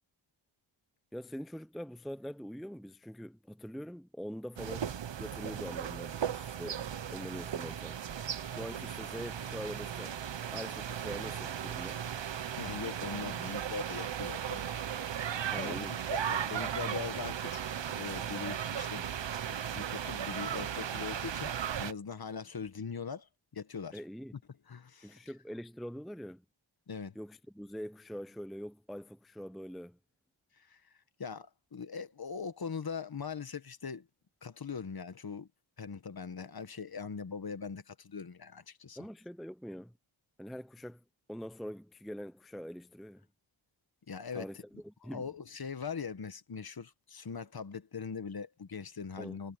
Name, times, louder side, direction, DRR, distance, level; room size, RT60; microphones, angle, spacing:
voice 1, 1.1-6.8 7.1-8.0 8.4-10.2 10.5-12.0 15.5-16.0 23.9-24.3 25.0-26.4 27.1-30.0 39.0-39.9 40.4-41.0 41.3-43.3 44.3-45.3 49.2-49.4, equal, ahead, 0.6 m, -44 dB
sound 1, 4.6-21.9, right 9 dB, 65° right, 1.0 m, -36 dB
voice 2, 12.5-14.7 15.6-17.6 17.9-19.2 19.4-21.5 21.8-23.3 23.5-24.0 24.7-25.2 26.9-27.1 30.6-30.8 31.2-34.1 34.4-35.5 35.8-39.0 44.1-44.6 45.0-49.6, left 6 dB, 50° left, 1.4 m, -41 dB
wide cardioid pair, 100°, 48 cm